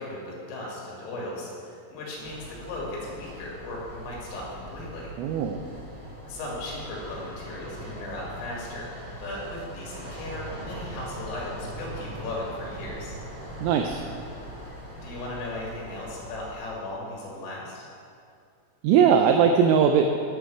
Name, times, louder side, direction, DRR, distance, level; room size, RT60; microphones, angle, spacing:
voice 1, 0.0-5.1 6.2-8.9 9.2-13.1 14.9-17.8, left 2 dB, 75° left, -4 dB, 4.7 m, -37 dB
sound 1, 2.2-16.5, right 1 dB, 35° right, 2.5 m, -41 dB
voice 2, 5.2-5.6 13.6-14.0 18.8-20.1, right 7 dB, 85° right, 5 dB, 2.7 m, -20 dB
10.5 x 9.2 x 4.7 m, 2.4 s
omnidirectional pair, 6.0 m